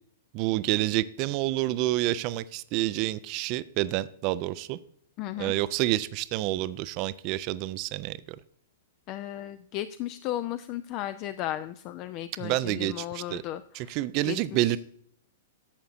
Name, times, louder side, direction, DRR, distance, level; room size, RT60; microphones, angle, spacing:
voice 1, 0.3-4.8 5.4-8.2 12.4-13.4 13.7-14.8, right 16 dB, 40° right, 0.4 m, -28 dB
voice 2, 5.2-5.5 9.1-14.0 14.2-14.8, left 13 dB, 35° left, 0.4 m, -35 dB
11.5 x 7.8 x 2.5 m
figure-of-eight pair, 105°, 0 cm